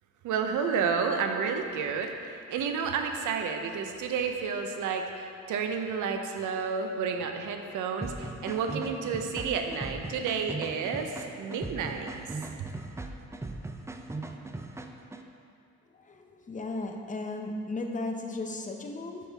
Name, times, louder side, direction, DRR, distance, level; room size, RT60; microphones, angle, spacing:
voice 1, 0.2-2.1 2.5-11.1 11.4-12.1, right 6 dB, 80° right, 5 dB, 0.7 m, -30 dB
sound 1, 8.0-15.2, right 2 dB, 10° right, 0.4 m, -39 dB
voice 2, 16.1-19.2, left 2 dB, 25° left, 3 dB, 0.7 m, -35 dB
8.3 x 5.5 x 3.5 m, 2.4 s
cardioid pair, 90°, 30 cm